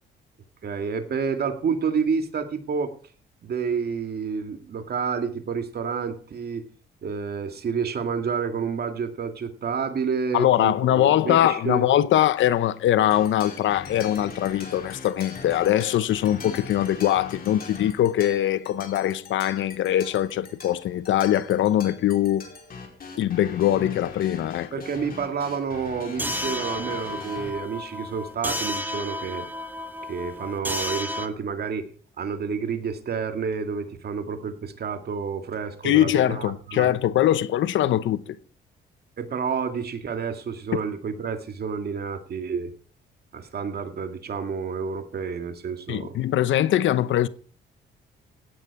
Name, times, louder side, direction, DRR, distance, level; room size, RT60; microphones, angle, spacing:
voice 1, 0.6-2.9 3.4-6.6 7.0-11.9 24.7-29.5 30.1-31.9 32.2-36.9 39.2-42.7 43.3-46.1, right 6 dB, 55° right, 2.2 m, -29 dB
voice 2, 10.3-22.5 23.2-24.7 35.8-38.4 45.9-47.3, left 12 dB, 75° left, 0.9 m, -22 dB
sound 1, 13.1-27.5, left 4 dB, 50° left, 4.6 m, -41 dB
sound 2, 26.2-31.3, left 1 dB, 10° right, 1.9 m, -32 dB
17.0 x 9.3 x 4.9 m
cardioid pair, 90°, 20 cm